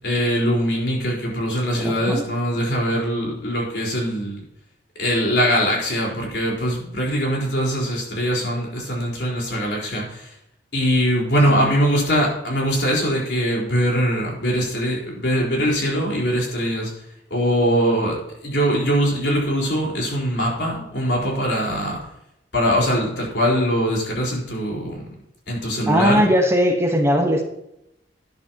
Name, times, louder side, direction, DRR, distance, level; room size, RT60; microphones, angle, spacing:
voice 1, 0.0-4.4 5.0-10.3 10.7-16.9 17.3-22.0 22.5-25.0 25.5-26.2, equal, 70° left, -2 dB, 4.5 m, -22 dB
voice 2, 1.8-2.2 11.5-11.7 25.9-27.4, equal, 15° right, 3 dB, 1.2 m, -19 dB
12.0 x 10.5 x 3.0 m, 0.83 s
head